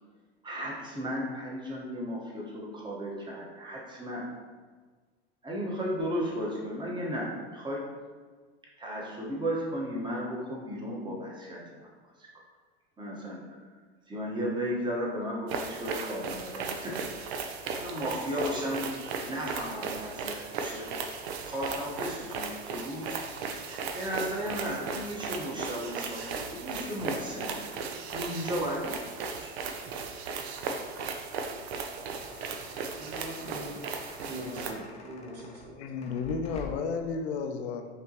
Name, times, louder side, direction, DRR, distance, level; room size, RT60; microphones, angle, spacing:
voice 1, 0.4-4.2 5.4-7.8 8.8-11.6 12.2-12.3 13.0-13.6 14.1-16.9 17.4-18.8 19.3-20.9 21.4-27.5 28.1-29.0 29.4-29.6, equal, 15° right, -4 dB, 1.1 m, -35 dB
sound 1, 15.5-34.7, right 5 dB, 70° right, 0.6 m, -36 dB
sound 2, 32.0-37.0, left 5 dB, 20° left, 0.5 m, -48 dB
voice 2, 33.0-33.8 34.3-35.8, right 1 dB, 50° right, -3 dB, 1.4 m, -41 dB
voice 3, 35.8-37.9, left 5 dB, 75° left, 6 dB, 0.6 m, -32 dB
5.3 x 2.9 x 2.9 m, 1.5 s
hypercardioid pair, 110°, 33 cm